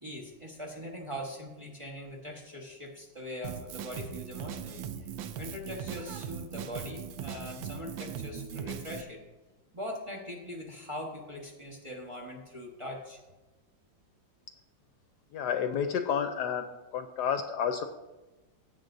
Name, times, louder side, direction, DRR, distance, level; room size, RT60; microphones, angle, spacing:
voice 1, 0.0-5.1 5.4-9.2 9.7-13.2, left 1 dB, 20° right, -1 dB, 1.2 m, -41 dB
Drum kit, 3.4-9.0, right 8 dB, 85° right, 1.4 m, -39 dB
voice 2, 15.3-16.7 16.9-17.8, left 7 dB, 70° left, 7 dB, 1.1 m, -30 dB
16.0 x 7.5 x 2.6 m, 1.1 s
omnidirectional pair, 2.0 m